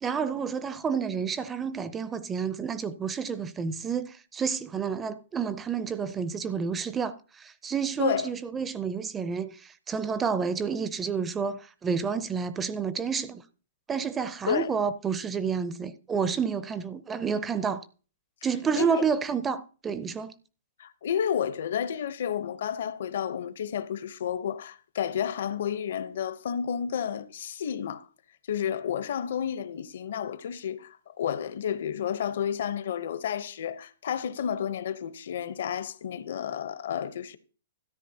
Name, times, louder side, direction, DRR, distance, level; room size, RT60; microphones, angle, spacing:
voice 1, 0.0-13.4 13.9-17.8 18.4-20.3, right 6 dB, 15° right, 0.5 m, -30 dB
voice 2, 20.8-28.1 28.5-37.4, left 8 dB, 65° left, 0.8 m, -31 dB
13.0 x 10.0 x 2.8 m
hypercardioid pair, 155°, 0 cm